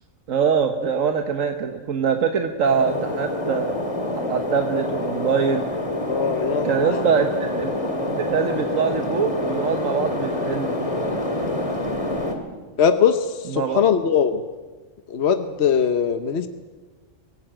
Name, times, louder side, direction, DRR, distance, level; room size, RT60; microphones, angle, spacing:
voice 1, 0.3-3.8 4.3-5.7 6.6-7.8 8.0-10.9 13.5-13.8, right 6 dB, 85° right, 5 dB, 1.5 m, -23 dB
sound 1, 2.6-12.4, left 1 dB, 25° left, 2.5 m, -26 dB
voice 2, 6.1-7.0 12.8-14.4 15.1-16.5, left 7 dB, 60° left, 9 dB, 1.2 m, -21 dB
24.5 x 16.5 x 8.9 m, 1.4 s
omnidirectional pair, 1.3 m